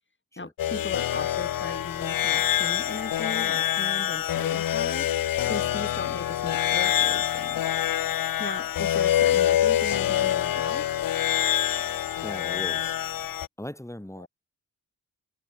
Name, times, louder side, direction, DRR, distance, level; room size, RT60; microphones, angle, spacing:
voice 1, 0.4-7.6 8.4-10.9 14.2-14.3, left 3 dB, 30° left, 6.9 m, -37 dB
sound 1, 0.6-13.5, left 11 dB, 65° left, 0.7 m, -26 dB
voice 2, 12.2-13.0 13.6-14.3, left 1 dB, 10° left, 5.6 m, -40 dB
cardioid pair, 55°, 37 cm